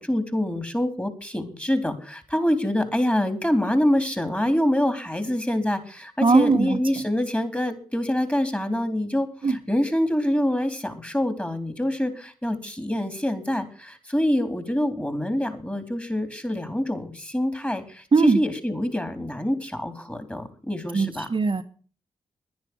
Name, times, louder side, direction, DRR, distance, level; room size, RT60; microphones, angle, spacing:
voice 1, 0.0-21.3, left 1 dB, 10° left, 9 dB, 3.9 m, -26 dB
voice 2, 6.2-7.0 9.4-9.6 18.1-18.4 20.9-21.6, right 4 dB, 40° right, 5 dB, 1.5 m, -20 dB
10.5 x 10.5 x 8.0 m, 0.40 s
supercardioid pair, 45°, 13 cm